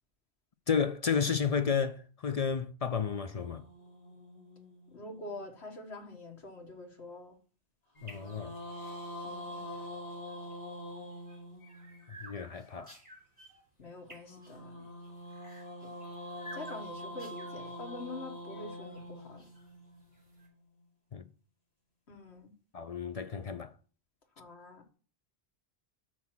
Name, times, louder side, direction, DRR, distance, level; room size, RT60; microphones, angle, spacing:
voice 1, 0.7-3.6 8.0-8.5 12.2-12.9 21.1-21.2 22.7-23.7, left 6 dB, 50° left, 0.4 m, -32 dB
sound 1, 3.3-5.7 7.9-12.1 14.2-20.4, left 1 dB, 35° left, 3.4 m, -45 dB
voice 2, 4.9-7.4 9.2-9.7 13.8-14.9 15.8-15.9 16.5-19.4 22.1-22.5 24.4-24.8, left 2 dB, 85° left, 1.8 m, -45 dB
sound 2, 7.9-20.5, right 1 dB, 10° right, 4.5 m, -55 dB
6.2 x 5.8 x 5.9 m
omnidirectional pair, 1.1 m